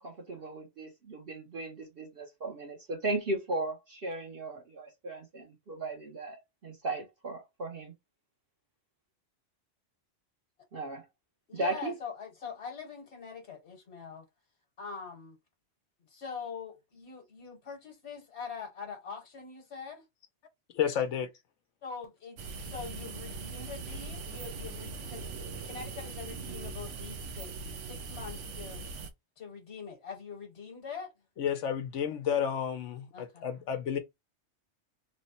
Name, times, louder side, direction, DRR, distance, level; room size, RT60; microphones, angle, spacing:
voice 1, 0.0-7.9 10.7-11.0 11.5-11.9, right 2 dB, 55° right, 0.9 m, -36 dB
voice 2, 11.5-14.3 14.8-15.4 16.1-20.0 21.8-28.8 29.4-31.1 33.1-33.4, left 6 dB, 65° left, 1.2 m, -43 dB
voice 3, 20.7-21.3 31.4-34.0, left 8 dB, 85° left, 1.0 m, -31 dB
sound 1, 22.4-29.1, right 4 dB, 85° right, 0.9 m, -41 dB
3.2 x 2.1 x 4.1 m
omnidirectional pair, 1.2 m